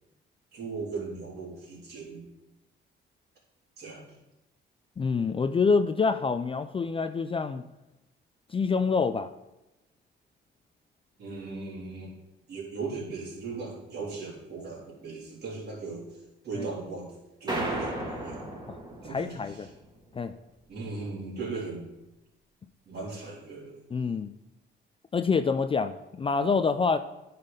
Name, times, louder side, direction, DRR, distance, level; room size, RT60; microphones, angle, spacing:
voice 1, 0.5-2.2 3.8-4.2 11.2-12.1 12.5-17.1 17.4-18.5 19.0-19.7 20.7-21.9 22.9-23.8, right 4 dB, 55° right, -3 dB, 3.2 m, -38 dB
voice 2, 5.0-7.6 8.5-9.3 16.6-16.7 18.7-18.8 19.1-19.7 20.1-20.3 23.9-24.3 25.1-27.0, left 5 dB, 25° left, 10 dB, 0.4 m, -26 dB
sound 1, 17.5-19.9, right 1 dB, 20° right, 2.0 m, -34 dB
9.7 x 4.2 x 5.1 m, 0.97 s
cardioid pair, 90°, 20 cm